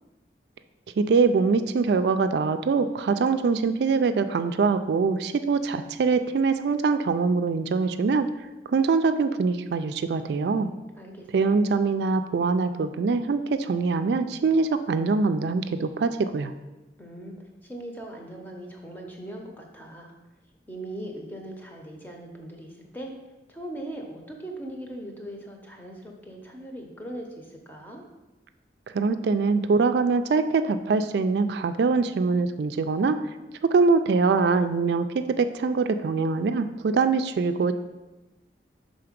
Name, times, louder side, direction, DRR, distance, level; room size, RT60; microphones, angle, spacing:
voice 1, 1.0-8.3 8.7-10.7 11.3-16.5 28.9-33.2 33.7-37.7, right 4 dB, 75° right, 9 dB, 0.3 m, -23 dB
voice 2, 11.0-11.5 17.0-17.3 17.6-20.1 20.7-23.1 23.5-28.0, right 1 dB, 10° left, 1 dB, 0.7 m, -40 dB
5.7 x 3.8 x 5.1 m, 1.1 s
head